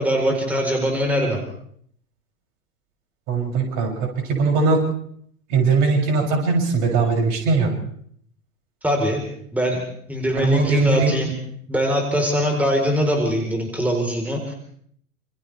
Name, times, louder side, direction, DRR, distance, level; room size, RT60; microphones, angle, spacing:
voice 1, 0.0-1.4 8.8-9.2 9.5-9.8 10.1-11.3 11.7-14.5, equal, 5° right, 1 dB, 4.3 m, -22 dB
voice 2, 3.3-4.8 5.5-7.7 10.4-11.2, right 4 dB, 45° right, 1 dB, 7.6 m, -20 dB
28.5 x 28.0 x 3.5 m, 0.65 s
figure-of-eight pair, 90°, 44 cm